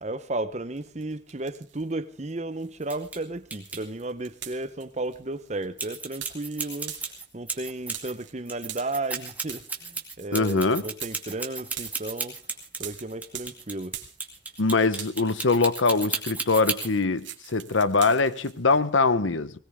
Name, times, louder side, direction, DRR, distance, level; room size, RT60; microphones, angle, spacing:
voice 1, 0.0-7.0 7.3-12.4 12.8-14.0, right 2 dB, 35° right, 0.8 m, -34 dB
sound 1, 0.8-1.9 2.3-14.6 14.9-18.8, right 11 dB, 75° right, 2.6 m, -44 dB
sound 2, 2.8-3.2 3.5-3.8 5.8-8.1 8.5-16.9, right 4 dB, 10° right, 2.4 m, -33 dB
voice 2, 10.3-10.8 14.6-19.5, left 3 dB, 85° left, 1.0 m, -23 dB
20.5 x 19.0 x 3.6 m
head